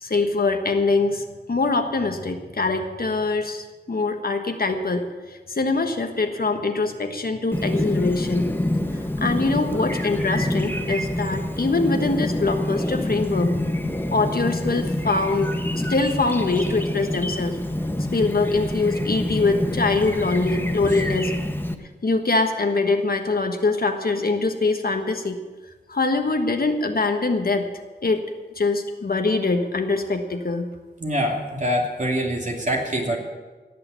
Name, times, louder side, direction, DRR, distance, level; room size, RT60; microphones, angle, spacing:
voice 1, 0.0-8.5 8.9-13.5 14.1-17.5 18.1-21.3 22.0-25.4 25.9-27.7 28.0-28.2 28.6-30.7, left 3 dB, 60° left, 5 dB, 1.4 m, -23 dB
Chirp tweet, 7.5-21.7, left 1 dB, 10° left, 1.2 m, -26 dB
voice 2, 31.0-33.2, equal, 45° right, -1 dB, 2.8 m, -25 dB
18.5 x 6.9 x 8.2 m, 1.3 s
wide cardioid pair, 60°, 18 cm